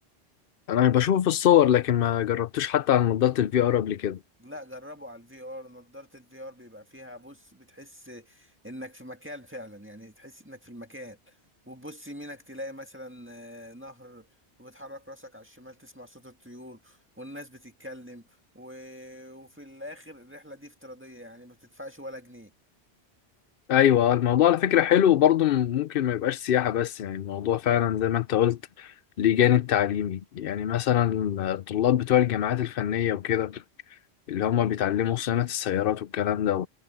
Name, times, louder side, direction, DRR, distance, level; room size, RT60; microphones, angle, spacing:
voice 1, 0.7-4.2 23.7-28.9 29.2-33.6 34.3-36.7, left 11 dB, 65° left, 0.8 m, -23 dB
voice 2, 4.4-11.4 11.6-14.3 14.6-22.5, equal, 10° right, 1.8 m, -44 dB
omnidirectional pair, 1.1 m